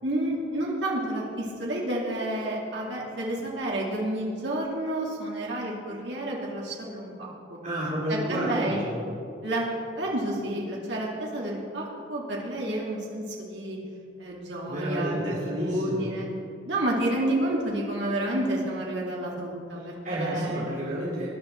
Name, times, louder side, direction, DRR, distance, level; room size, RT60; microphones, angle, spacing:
voice 1, 0.0-7.6 8.1-8.8 9.4-9.6 10.0-13.8 14.2-15.3 15.6-16.3 16.6-20.7, right 1 dB, 65° right, -3 dB, 2.5 m, -30 dB
voice 2, 7.6-9.0 14.7-16.1 19.8-21.3, equal, 45° right, -8 dB, 3.2 m, -30 dB
20.0 x 11.0 x 4.5 m, 2.5 s
head